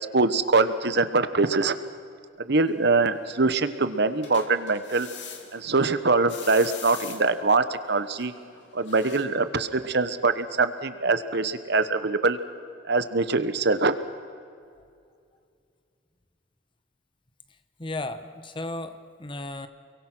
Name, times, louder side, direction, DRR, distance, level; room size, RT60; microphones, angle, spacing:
voice 1, 0.1-1.7 2.4-5.1 5.5-8.3 8.7-12.4 12.8-13.9, right 3 dB, 60° right, 11 dB, 1.1 m, -23 dB
sound 1, 2.7-9.3, left 6 dB, 65° left, 2.8 m, -44 dB
voice 2, 17.8-19.7, left 2 dB, 25° left, 10 dB, 1.1 m, -34 dB
29.5 x 23.0 x 6.2 m, 2.3 s
head